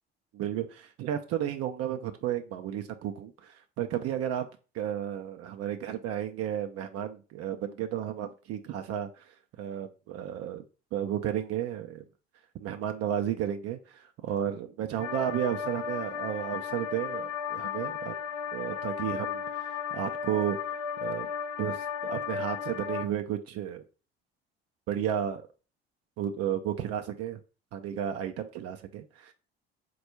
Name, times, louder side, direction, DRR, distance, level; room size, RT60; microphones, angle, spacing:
voice 1, 0.3-4.5 4.7-9.3 9.6-10.6 10.9-12.0 12.6-18.2 18.5-21.3 21.6-23.8 24.9-25.5 26.2-27.4 27.7-29.3, right 10 dB, 55° right, 6 dB, 0.5 m, -33 dB
sound 1, 15.0-23.0, left 7 dB, 60° left, 0.6 m, -35 dB
4.2 x 2.3 x 4.4 m, 0.34 s
hypercardioid pair, 55°, 30 cm